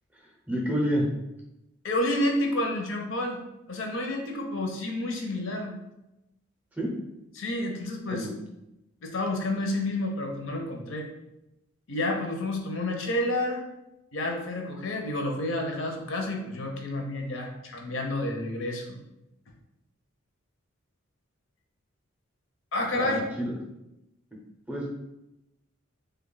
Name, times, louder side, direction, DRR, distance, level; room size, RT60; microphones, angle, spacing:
voice 1, 0.5-1.1 6.8-6.9 8.1-8.3 23.0-23.5 24.7-24.8, equal, 10° right, -2 dB, 0.5 m, -28 dB
voice 2, 1.8-3.4 3.7-5.8 7.4-8.3 9.0-11.1 11.9-13.6 14.1-19.0 22.7-23.3, left 1 dB, 65° left, 2 dB, 0.6 m, -30 dB
3.3 x 2.2 x 3.8 m, 0.91 s
head